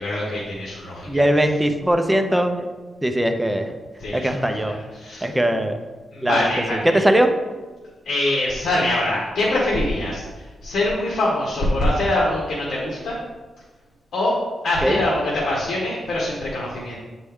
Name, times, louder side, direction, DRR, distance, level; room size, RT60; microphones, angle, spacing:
voice 1, 0.0-1.2 4.0-4.4 4.7-5.3 6.1-7.0 8.0-10.2 10.6-13.1 14.1-14.4 14.6-17.0, left 1 dB, 80° left, -5 dB, 1.4 m, -23 dB
voice 2, 1.1-2.7 3.0-3.7 4.1-4.8 5.2-5.8 6.2-7.3 14.8-15.0, right 1 dB, 5° right, 6 dB, 0.5 m, -20 dB
8.3 x 4.3 x 3.6 m, 1.3 s
wide cardioid pair, 160°, 0 cm